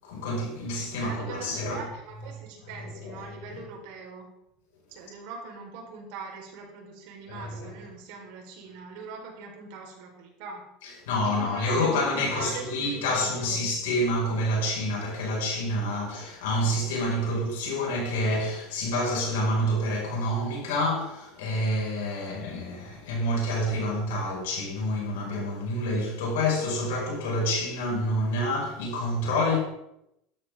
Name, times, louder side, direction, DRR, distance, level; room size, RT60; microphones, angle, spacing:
voice 1, 0.0-1.8 2.8-3.2 7.3-7.8 10.8-29.6, left 1 dB, 85° left, 5.7 m, -28 dB
voice 2, 1.0-4.3 4.9-10.6 11.2-13.6, right 5 dB, 70° right, 4.5 m, -42 dB
13.5 x 12.0 x 3.8 m
supercardioid pair, 120°, 0 cm